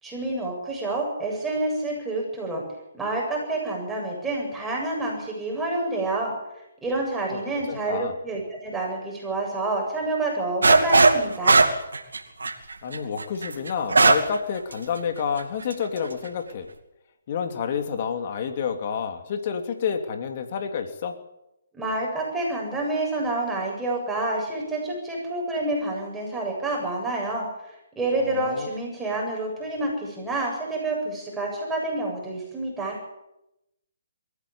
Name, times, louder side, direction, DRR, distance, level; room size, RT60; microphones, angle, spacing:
voice 1, 0.0-2.6 2.9-6.3 6.8-11.6 21.7-33.0, right 2 dB, 5° right, -2 dB, 8.0 m, -28 dB
voice 2, 7.7-8.1 12.8-16.7 17.3-21.2 28.2-28.7, left 7 dB, 45° left, 6 dB, 3.0 m, -29 dB
sound 1, 10.6-11.2 11.4-14.4 14.7-14.8 15.4-15.7, right 3 dB, 85° right, 2.4 m, -17 dB
21.5 x 15.0 x 8.8 m, 0.90 s
hypercardioid pair, 145°, 0 cm